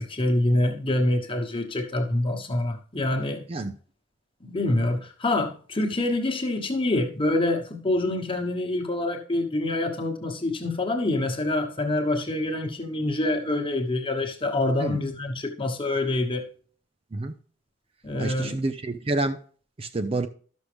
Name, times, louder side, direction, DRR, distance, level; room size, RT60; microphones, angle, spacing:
voice 1, 0.0-3.4 4.4-16.5 18.0-18.6, left 2 dB, 25° left, 1.2 m, -26 dB
voice 2, 18.2-19.4 19.8-20.3, right 2 dB, 30° right, 0.5 m, -28 dB
12.5 x 6.3 x 3.4 m
head